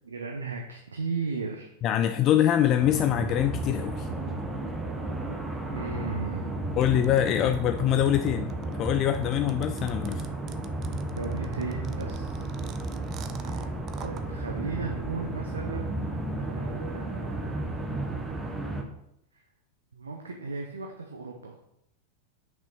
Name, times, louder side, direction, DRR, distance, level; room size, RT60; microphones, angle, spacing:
voice 1, 0.0-1.7 2.2-2.3 5.7-6.6 11.1-12.5 13.4-17.6 19.3-19.4 19.9-21.6, right 4 dB, 70° right, 2 dB, 0.9 m, -36 dB
voice 2, 1.8-4.1 6.8-10.2, left 11 dB, 35° left, 9 dB, 0.4 m, -24 dB
sound 1, 2.8-18.8, right 2 dB, 10° right, 1.1 m, -33 dB
sound 2, 6.8-14.2, right 9 dB, 35° right, 0.5 m, -46 dB
6.0 x 5.5 x 5.6 m, 0.80 s
figure-of-eight pair, 90°, 0 cm